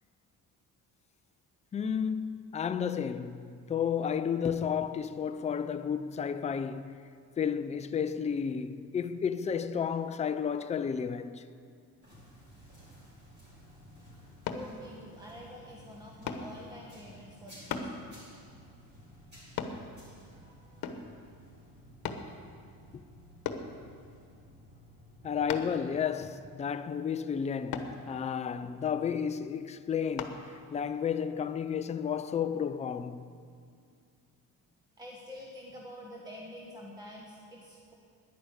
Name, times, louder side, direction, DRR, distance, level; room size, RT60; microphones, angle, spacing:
voice 1, 1.7-7.0 7.4-11.4 22.9-23.0 25.2-33.3, left 7 dB, 20° left, 0.4 m, -32 dB
sound 1, 12.0-25.6, equal, 30° right, 4.6 m, -54 dB
sound 2, 14.5-14.7 16.3-16.5 17.7-17.9 19.6-19.8 20.8-21.1 22.0-22.3 23.4-23.7 25.5-25.8 27.7-27.9 30.2-30.4 30.9-31.1, left 6 dB, 65° left, 1.2 m, -36 dB
voice 2, 14.5-18.1 20.2-21.2 35.0-37.9, left 1 dB, 10° right, 1.3 m, -48 dB
11.0 x 10.5 x 8.2 m
cardioid pair, 150°, 37 cm